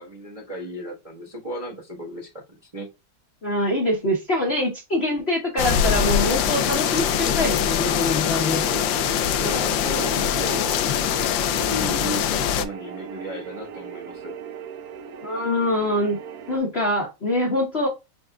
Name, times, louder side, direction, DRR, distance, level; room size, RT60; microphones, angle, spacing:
voice 1, 0.0-2.9 9.4-10.8 11.5-14.3, equal, 25° right, 0.9 m, -34 dB
voice 2, 3.4-8.6 15.2-16.2 16.5-17.9, left 1 dB, 45° left, 0.9 m, -24 dB
sound 1, 5.6-12.7, left 9 dB, 75° left, 1.1 m, -23 dB
sound 2, 5.9-16.6, right 7 dB, 75° right, 0.8 m, -38 dB
5.9 x 3.2 x 2.3 m
omnidirectional pair, 2.3 m